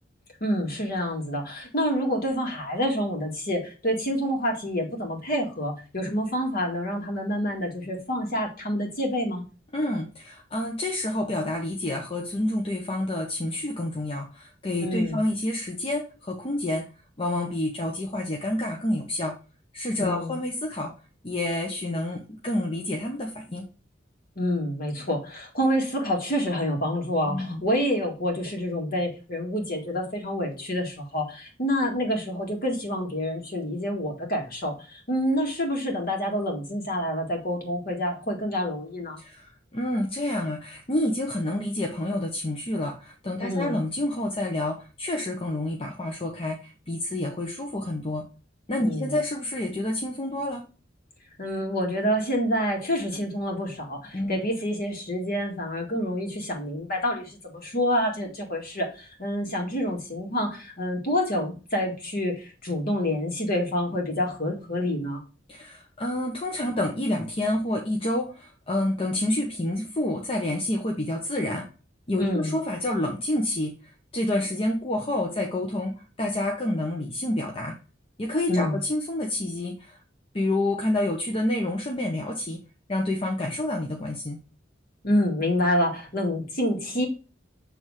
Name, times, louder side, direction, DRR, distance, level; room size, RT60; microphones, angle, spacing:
voice 1, 0.4-9.4 14.8-15.2 20.0-20.4 24.4-39.2 43.4-43.8 48.8-49.1 51.4-65.2 72.2-72.5 78.5-78.8 85.0-87.1, equal, 55° left, 1 dB, 2.1 m, -27 dB
voice 2, 9.7-16.9 17.2-19.3 19.7-20.9 21.2-23.7 27.3-27.6 39.2-48.2 48.7-50.6 54.1-54.4 65.5-71.7 72.1-73.7 74.1-77.8 78.2-80.0 80.3-82.6 82.9-84.4, left 1 dB, 30° left, 0 dB, 0.9 m, -28 dB
7.5 x 3.5 x 4.8 m, 0.33 s
head